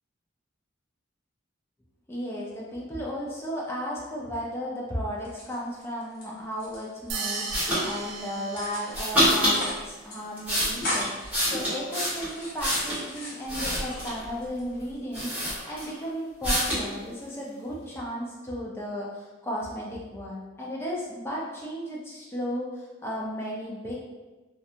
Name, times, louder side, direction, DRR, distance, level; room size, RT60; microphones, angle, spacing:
voice 1, 2.1-24.0, equal, 10° left, -5 dB, 0.4 m, -34 dB
sound 1, 5.2-6.2 6.5-7.5 7.8-8.1 8.6-9.1 9.4-9.8 10.1-10.2 10.5-11.3 11.8-14.0 14.4-15.0, left 1 dB, 50° left, 0.8 m, -37 dB
sound 2, 7.1-9.4, right 4 dB, 70° right, 0.4 m, -35 dB
sound 3, 7.5-7.8 8.9-9.6 10.2-13.0 13.5-14.3 14.8-14.9 15.1-16.0 16.4-16.9, equal, 10° right, 0.9 m, -26 dB
2.4 x 2.2 x 2.7 m, 1.2 s
head